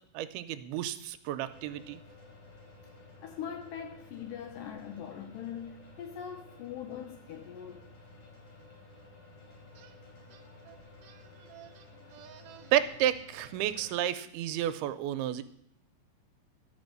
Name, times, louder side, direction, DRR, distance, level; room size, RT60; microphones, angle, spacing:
voice 1, 0.1-2.0 12.7-15.4, right 11 dB, 90° right, 2.6 m, -31 dB
sound 1, 1.4-13.9, left 2 dB, 60° left, 4.9 m, -54 dB
voice 2, 3.2-7.9, left 8 dB, 80° left, 2.0 m, -42 dB
sound 2, 9.7-10.0 10.3-12.9, right 10 dB, 70° right, 2.1 m, -55 dB
12.0 x 6.3 x 6.6 m
omnidirectional pair, 4.5 m